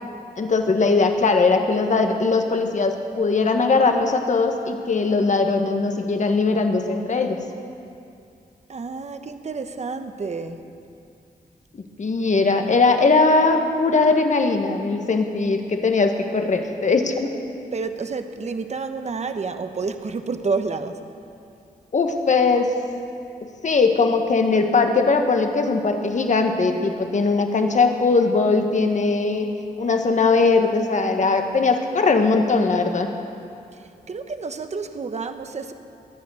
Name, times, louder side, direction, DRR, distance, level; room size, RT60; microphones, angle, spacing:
voice 1, 0.4-7.4 12.0-17.3 21.9-22.7 23.6-29.5 29.8-33.1, left 4 dB, 50° left, 5 dB, 1.5 m, -20 dB
voice 2, 8.7-10.6 17.7-21.0 33.7-35.7, right 4 dB, 45° right, 8 dB, 1.0 m, -29 dB
22.0 x 9.4 x 6.4 m, 2.6 s
cardioid pair, 80°, 16 cm